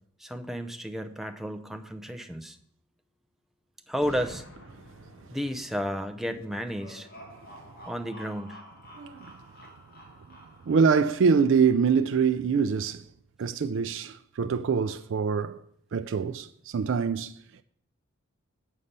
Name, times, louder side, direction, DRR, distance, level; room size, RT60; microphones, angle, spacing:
voice 1, 0.2-2.6 3.9-4.4 5.3-7.1 7.9-8.6 14.4-14.5, equal, ahead, 0.5 m, -32 dB
Boom, 4.0-7.8, left 1 dB, 75° left, 1.8 m, -49 dB
sound 1, 6.2-11.3, equal, 45° left, 2.0 m, -50 dB
voice 2, 8.9-9.3 10.7-13.1 13.4-15.6 15.9-17.4, right 5 dB, 60° right, 0.3 m, -24 dB
7.3 x 5.4 x 6.6 m
head